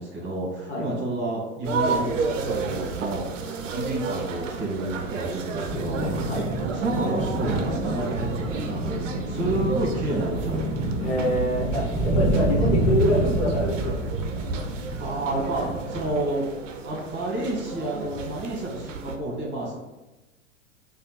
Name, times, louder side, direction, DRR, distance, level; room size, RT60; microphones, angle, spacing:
voice 1, 0.0-6.1 6.7-10.9 15.0-16.5 16.8-19.8, right 1 dB, 30° right, -4 dB, 1.1 m, -30 dB
sound 1, 1.6-19.2, right 4 dB, 70° right, 0.5 m, -32 dB
sound 2, 5.6-16.1, right 1 dB, 15° left, 1.0 m, -28 dB
voice 2, 11.0-14.0, equal, 60° left, -3 dB, 1.2 m, -25 dB
3.3 x 2.3 x 2.9 m, 1.0 s
figure-of-eight pair, 95°, 39 cm